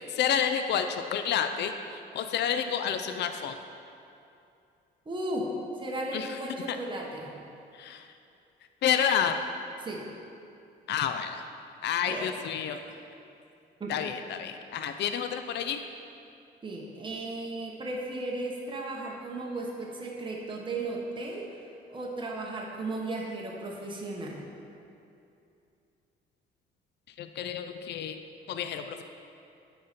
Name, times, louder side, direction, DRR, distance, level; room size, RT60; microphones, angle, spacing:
voice 1, 0.0-1.7 2.1-3.6 6.1-6.4 6.7-6.8 7.7-8.1 8.8-9.4 10.9-11.4 11.8-12.8 13.9-15.8 27.2-28.2 28.5-29.0, left 8 dB, 60° left, 8 dB, 0.4 m, -29 dB
voice 2, 5.1-5.5 5.8-7.3 9.8-10.0 12.0-12.3 12.7-12.8 13.8-13.9 16.6-21.6 21.9-24.4, right 2 dB, 25° right, -2 dB, 1.1 m, -35 dB
9.2 x 4.2 x 5.1 m, 2.6 s
cardioid pair, 90°, 20 cm